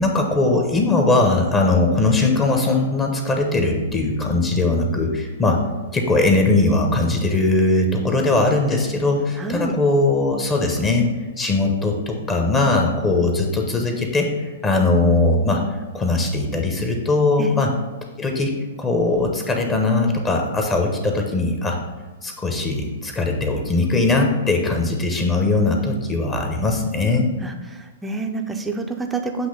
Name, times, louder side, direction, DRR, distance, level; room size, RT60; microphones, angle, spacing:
voice 1, 0.0-5.6 5.9-15.6 15.9-17.7 18.2-18.5 18.8-21.8 22.2-27.3, left 2 dB, 15° left, 2 dB, 0.9 m, -20 dB
voice 2, 9.4-9.7 17.4-17.6 27.4-27.5 28.0-29.5, right 3 dB, 10° right, 4 dB, 0.6 m, -27 dB
7.9 x 2.9 x 5.5 m, 1.2 s
figure-of-eight pair, 110°, 0 cm